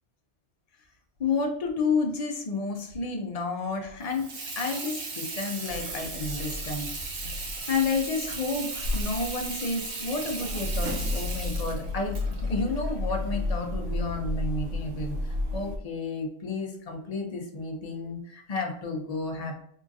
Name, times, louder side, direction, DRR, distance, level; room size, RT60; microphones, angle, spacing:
voice 1, 1.2-4.3 4.6-7.3 7.7-15.2 15.5-19.5, left 4 dB, 40° left, 2 dB, 0.5 m, -31 dB
Water tap faucet / Sink (filling or washing), 4.0-13.6, right 3 dB, 50° right, 0.6 m, -37 dB
sound 1, 5.7-8.4 8.7-15.8, left 2 dB, 85° right, 1.3 m, -32 dB
4.6 x 2.4 x 2.5 m, 0.69 s
omnidirectional pair, 1.3 m